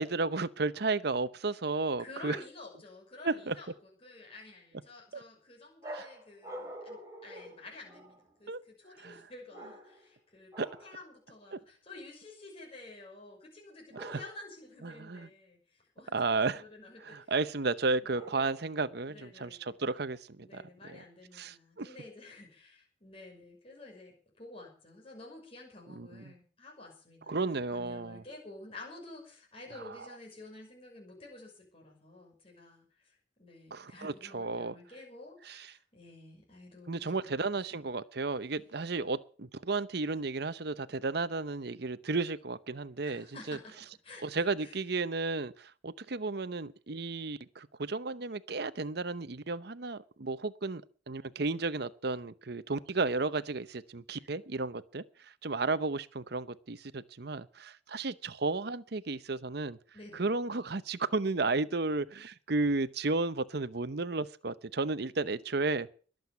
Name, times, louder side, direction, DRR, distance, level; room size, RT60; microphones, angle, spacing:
voice 1, 0.0-2.4 3.2-3.6 5.1-5.2 5.9-6.1 8.5-8.6 9.0-9.2 10.6-10.7 11.5-11.6 13.9-14.2 14.8-15.3 16.1-16.6 17.0-20.6 20.9-21.0 21.4-21.9 26.0-26.3 27.3-28.2 29.7-29.9 33.7-34.7 35.5-35.7 36.9-43.6 44.2-50.8 51.1-55.0 55.4-59.8 60.1-65.9, right 3 dB, 55° right, 0.8 m, -33 dB
voice 2, 2.0-17.3 18.0-18.2 19.1-19.7 20.4-37.9 43.0-44.8 59.9-60.3, left 2 dB, 30° left, 5.9 m, -51 dB
sound 1, 5.8-8.3 9.5-10.1 10.5-11.0 13.9-14.6 18.1-18.9, right 1 dB, 15° right, 2.9 m, -47 dB
21.5 x 7.9 x 6.9 m
head